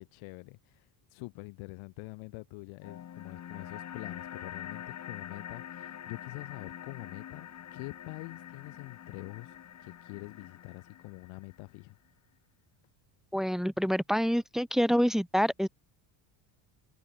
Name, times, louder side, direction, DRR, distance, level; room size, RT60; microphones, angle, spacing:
voice 1, 0.0-12.0, left 25 dB, 70° left, 3.6 m, -45 dB
sound 1, 2.8-11.8, left 10 dB, 35° left, 6.4 m, -45 dB
voice 2, 13.3-15.7, equal, ahead, 0.5 m, -27 dB
cardioid pair, 165°, 50 cm